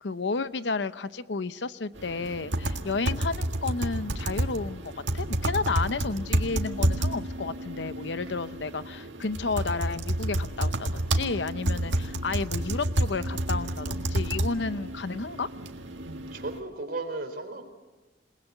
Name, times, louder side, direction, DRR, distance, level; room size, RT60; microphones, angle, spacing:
voice 1, 0.0-15.5, left 4 dB, 70° left, 13 dB, 0.8 m, -32 dB
sound 1, 2.0-16.6, right 1 dB, 90° right, 1.8 m, -30 dB
voice 2, 16.3-17.6, right 2 dB, 55° right, 5 dB, 4.0 m, -35 dB
28.0 x 19.5 x 8.0 m, 1.2 s
head